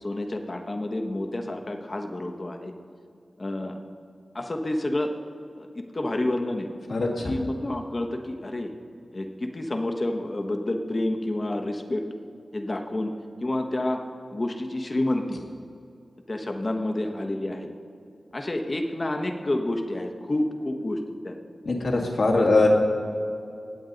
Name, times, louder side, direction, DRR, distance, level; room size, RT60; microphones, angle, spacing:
voice 1, 0.0-2.7 3.4-3.8 4.3-5.1 5.6-6.7 7.2-8.7 9.1-12.0 12.5-13.1 13.4-14.0 14.3-15.4 16.3-17.7 18.3-21.4 21.8-22.0 22.4-22.5, left 1 dB, 45° left, 5 dB, 1.1 m, -29 dB
voice 2, 6.9-7.4 21.6-22.7, left 3 dB, 75° left, -1 dB, 1.9 m, -22 dB
18.0 x 8.0 x 3.9 m, 2.6 s
cardioid pair, 55°, 0 cm